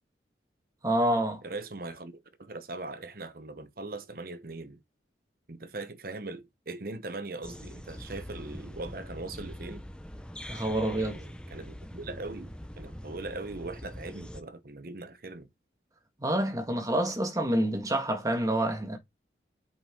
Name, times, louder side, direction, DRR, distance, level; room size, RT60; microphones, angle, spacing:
voice 1, 0.8-1.4 10.5-11.2 16.2-19.0, right 1 dB, 20° right, 1.7 m, -27 dB
voice 2, 1.4-4.8 5.5-9.8 11.0-15.5, right 2 dB, 55° right, 1.0 m, -40 dB
sound 1, 7.4-14.4, equal, 5° left, 0.8 m, -43 dB
7.7 x 5.5 x 3.8 m
head